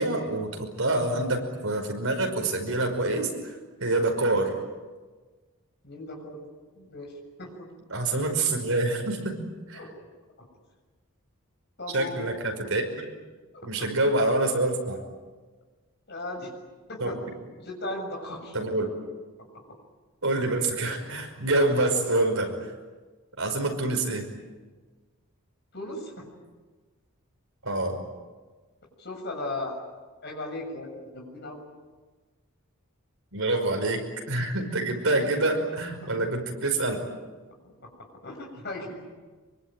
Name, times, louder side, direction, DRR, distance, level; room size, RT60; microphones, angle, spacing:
voice 1, 0.0-3.5 3.8-4.6 7.9-9.4 9.7-9.8 11.9-12.8 13.6-15.0 17.0-17.1 18.5-18.9 20.2-22.5 23.4-24.3 27.6-28.0 33.3-37.0, right 2 dB, 70° right, 3 dB, 5.6 m, -26 dB
voice 2, 5.8-6.5 6.8-7.1 7.4-7.7 9.7-9.9 11.8-12.3 13.5-13.9 16.1-16.5 16.9-17.2 17.6-18.6 25.7-26.3 29.0-29.8 30.2-31.6 36.0-36.1 37.8-39.0, left 2 dB, 50° left, 1 dB, 7.2 m, -37 dB
25.0 x 24.0 x 9.0 m, 1.4 s
head